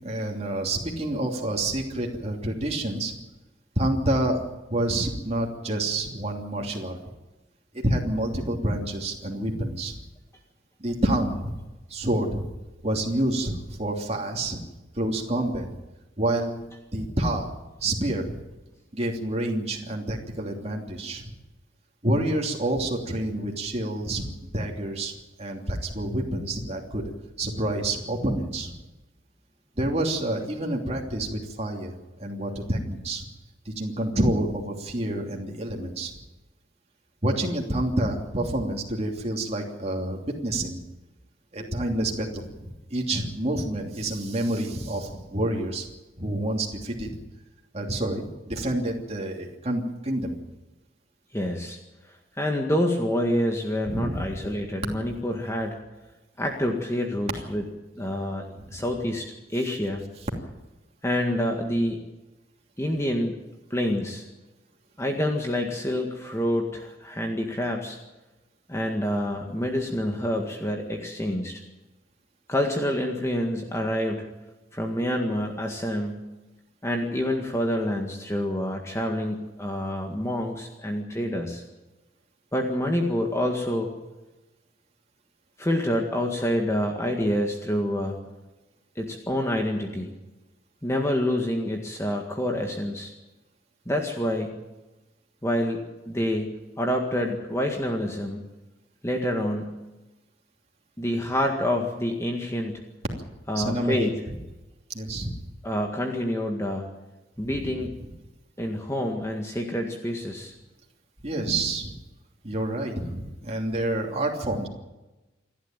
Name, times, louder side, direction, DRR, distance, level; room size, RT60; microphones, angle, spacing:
voice 1, 0.0-3.1 3.8-4.4 4.7-7.0 7.7-10.0 10.8-11.6 11.9-12.5 12.8-14.6 14.9-15.7 16.2-16.6 16.9-17.5 17.8-18.3 18.9-21.2 22.0-25.1 25.4-27.0 27.4-28.7 29.8-33.2 33.6-36.1 37.2-40.8 41.5-45.8 46.2-47.1 47.7-50.4 53.9-54.4 103.5-104.1 104.9-105.3 107.4-107.6 111.2-111.9 112.4-114.7, right 1 dB, 35° right, 0 dB, 3.0 m, -28 dB
voice 2, 51.3-51.8 52.0-55.8 56.4-57.6 58.0-58.5 58.7-60.1 61.0-62.0 62.8-63.4 63.7-64.3 65.0-68.0 68.7-71.6 72.5-74.3 74.7-76.2 76.8-81.6 82.5-83.9 85.6-88.2 89.0-90.1 90.8-93.1 93.9-94.6 95.4-98.4 99.0-99.8 101.0-102.8 103.5-104.1 105.6-106.9 107.4-107.9 108.6-110.5, left 1 dB, 15° left, 2 dB, 1.8 m, -27 dB
28.0 x 12.0 x 9.1 m, 1.1 s
head